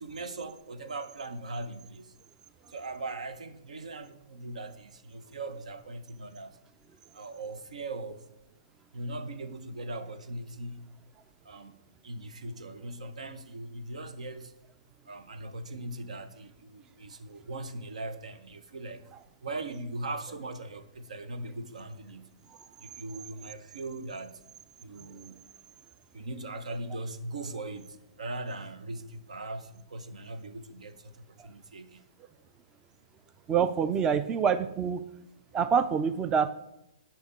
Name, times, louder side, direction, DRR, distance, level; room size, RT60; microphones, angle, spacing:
voice 1, 0.0-2.1 2.7-6.6 7.1-8.2 8.9-10.9 11.4-14.5 15.1-19.0 19.4-22.3 22.8-24.4 24.8-25.4 26.1-31.1 31.4-32.1, right 2 dB, 85° right, 11 dB, 0.9 m, -40 dB
voice 2, 33.5-35.0 35.5-36.5, right 7 dB, 20° right, 12 dB, 0.4 m, -26 dB
9.1 x 5.7 x 5.2 m, 0.85 s
hypercardioid pair, 140°, 4 cm